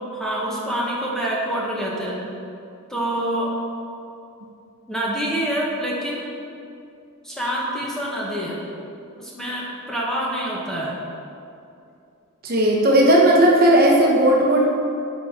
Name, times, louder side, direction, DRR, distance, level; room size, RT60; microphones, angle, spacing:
voice 1, 0.1-2.2 2.9-3.5 4.9-6.3 7.2-8.6 9.2-11.0, right 1 dB, ahead, -5 dB, 1.3 m, -26 dB
voice 2, 12.4-14.7, right 1 dB, 45° right, -2 dB, 1.1 m, -15 dB
13.0 x 5.6 x 4.3 m, 2.6 s
head